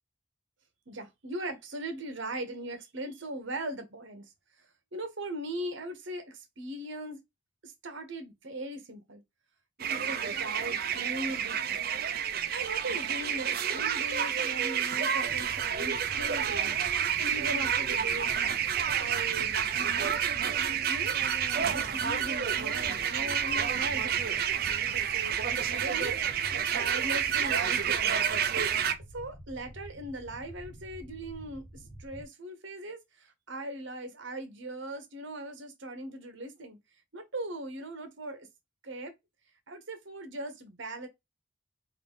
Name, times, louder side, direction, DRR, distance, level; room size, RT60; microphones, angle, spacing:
voice 1, 0.9-4.3 4.9-7.2 7.6-9.2 9.8-11.8 12.5-18.6 19.0-20.2 20.7-21.2 21.5-26.2 26.5-28.2 29.1-31.6 32.0-36.8 37.1-38.5 38.8-39.1 39.7-41.1, right 1 dB, 65° right, 1.1 m, -39 dB
sound 1, 9.8-28.9, right 8 dB, 45° right, 0.5 m, -29 dB
sound 2, 15.3-32.2, equal, 35° left, 1.2 m, -48 dB
3.9 x 2.6 x 3.6 m
head